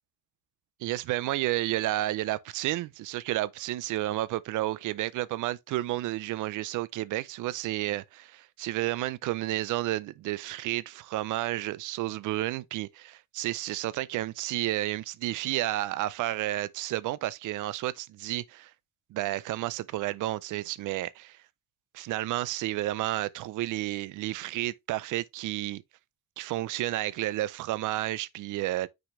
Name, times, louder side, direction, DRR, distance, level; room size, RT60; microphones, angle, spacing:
voice 1, 0.8-18.7 19.1-21.4 21.9-25.8 26.4-28.9, right 16 dB, 85° right, 0.5 m, -31 dB
6.2 x 5.0 x 3.1 m
cardioid pair, 90°, 30 cm